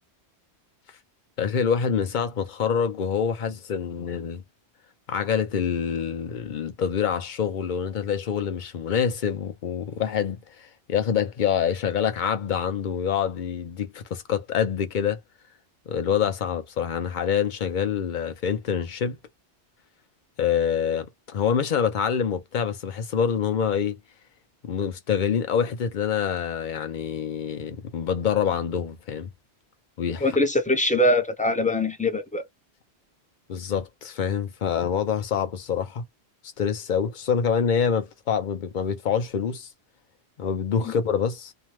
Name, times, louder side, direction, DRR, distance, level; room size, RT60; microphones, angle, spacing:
voice 1, 1.4-4.4 5.1-10.4 10.9-15.2 15.9-19.2 20.4-24.0 24.6-29.3 30.0-30.2 33.5-36.0 36.6-39.7 40.4-41.5, left 7 dB, 50° left, 0.7 m, -26 dB
voice 2, 30.2-32.4 40.8-40.9, left 1 dB, 10° left, 0.4 m, -22 dB
2.7 x 2.1 x 3.1 m
omnidirectional pair, 1.1 m